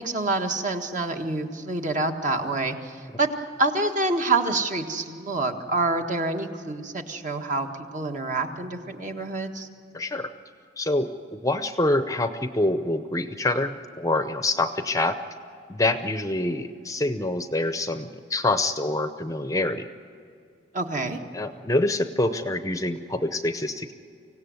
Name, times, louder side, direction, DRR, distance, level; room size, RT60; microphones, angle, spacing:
voice 1, 0.0-3.3 3.6-9.7 20.7-21.2, right 3 dB, 40° right, 4 dB, 1.7 m, -27 dB
voice 2, 9.9-10.3 10.8-15.2 15.7-19.9 21.3-23.9, left 2 dB, 20° left, 9 dB, 0.7 m, -26 dB
25.0 x 17.0 x 9.6 m, 2.3 s
head